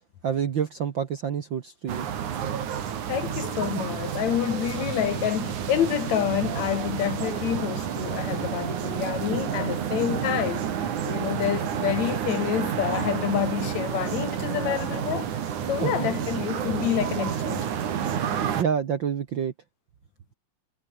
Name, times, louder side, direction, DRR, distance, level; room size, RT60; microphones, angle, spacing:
voice 1, 0.2-2.1 3.6-3.8 15.8-16.2 18.5-19.5, right 7 dB, 55° right, 1.4 m, -28 dB
sound 1, 1.9-18.6, right 8 dB, 70° right, 3.7 m, -30 dB
voice 2, 3.1-15.3 15.7-18.0, left 10 dB, 65° left, 2.5 m, -28 dB
omnidirectional pair, 3.6 m